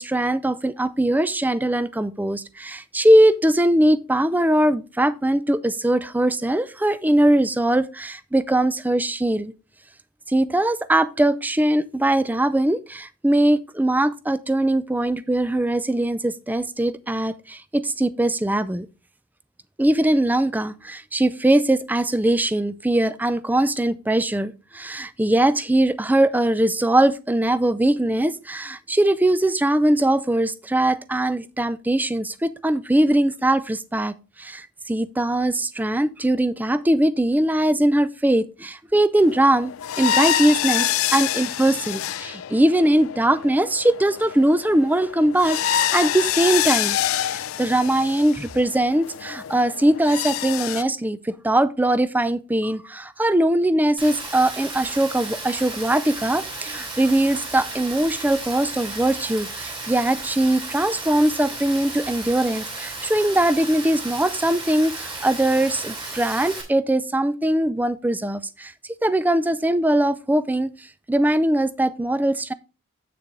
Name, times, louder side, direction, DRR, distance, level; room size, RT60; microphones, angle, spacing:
voice 1, 0.0-9.5 10.3-18.9 19.8-39.7 40.0-47.0 47.3-68.7 69.0-72.5, right 1 dB, 10° right, 0.3 m, -21 dB
sound 1, 39.2-50.8, left 11 dB, 80° left, 0.4 m, -27 dB
Rain, 54.0-66.6, right 2 dB, 25° right, 2.8 m, -34 dB
8.1 x 6.8 x 3.7 m
head